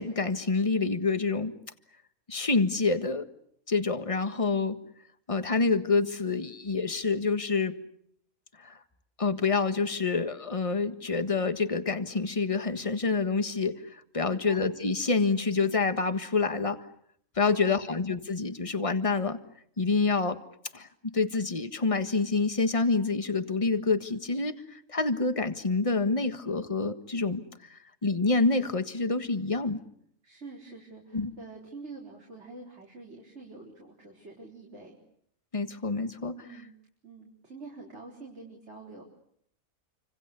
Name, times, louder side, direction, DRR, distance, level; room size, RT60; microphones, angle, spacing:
voice 1, 0.0-1.5 2.3-3.3 3.7-4.8 5.3-7.8 8.6-8.8 9.2-16.8 17.3-19.4 19.8-20.4 20.7-20.9 21.1-27.4 27.7-29.8 31.1-31.3 35.5-36.3, left 4 dB, 25° left, 9 dB, 1.6 m, -27 dB
voice 2, 14.2-14.7 17.4-18.0 30.2-35.0 36.2-36.7 37.0-39.0, right 3 dB, 55° right, -2 dB, 4.6 m, -46 dB
28.5 x 26.0 x 6.8 m, 0.68 s
omnidirectional pair, 1.4 m